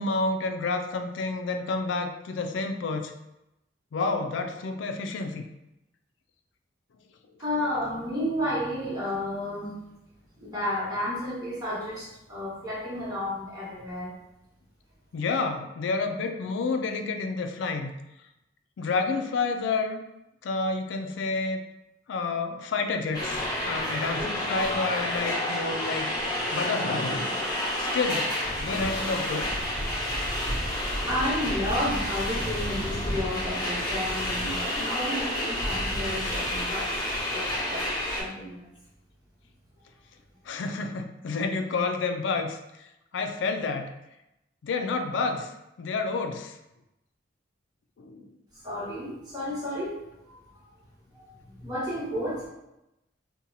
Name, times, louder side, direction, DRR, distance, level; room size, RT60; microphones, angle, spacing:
voice 1, 0.0-3.1 3.9-5.4 15.1-18.0 18.8-20.0 20.4-21.6 22.1-26.1 26.5-27.4 27.8-28.3 28.6-29.5 40.5-42.9 43.1-43.9 44.6-45.5 45.8-46.6 48.0-48.3, left 3 dB, 70° left, 6 dB, 0.4 m, -29 dB
voice 2, 7.4-9.7 10.4-14.2 30.9-38.7 48.6-50.0 50.2-50.4 51.1-52.5, left 1 dB, 20° right, -8 dB, 1.2 m, -32 dB
sound 1, 23.1-38.2, left 1 dB, 20° left, 0.8 m, -29 dB
2.7 x 2.2 x 3.9 m, 0.91 s
head